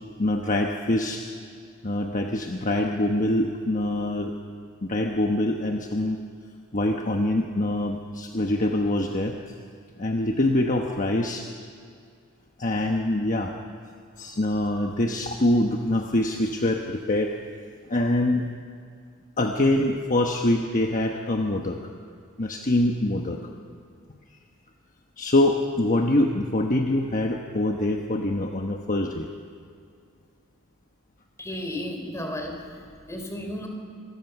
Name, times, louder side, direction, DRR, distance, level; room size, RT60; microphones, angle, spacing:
voice 1, 0.2-1.2 1.8-4.3 4.8-6.2 6.7-9.4 10.0-11.4 12.6-13.5 14.2-17.3 17.9-18.5 19.4-21.8 22.4-23.4 25.2-29.3, left 1 dB, 35° left, 2 dB, 1.2 m, -24 dB
voice 2, 31.4-33.7, left 1 dB, 15° left, 3 dB, 3.6 m, -34 dB
26.5 x 21.5 x 6.0 m, 2.2 s
head